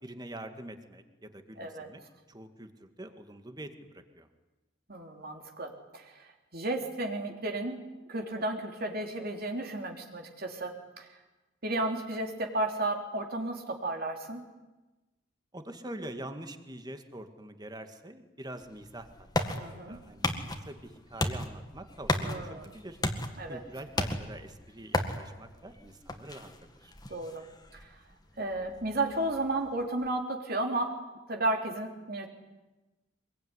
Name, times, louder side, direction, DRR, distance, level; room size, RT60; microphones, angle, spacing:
voice 1, 0.0-2.0 2.3-4.3 15.5-23.0 23.5-26.5 26.8-26.9, right 1 dB, 20° right, 7 dB, 2.0 m, -45 dB
voice 2, 1.6-1.9 4.9-11.1 11.6-14.4 19.6-20.0 22.2-22.7 23.4-23.6 27.1-27.4 27.7-27.9 28.4-31.0 31.3-32.3, right 2 dB, 50° right, 3 dB, 3.4 m, -33 dB
sound 1, 18.6-30.1, left 1 dB, 20° left, 2.0 m, -36 dB
24.5 x 22.0 x 9.8 m, 1.1 s
head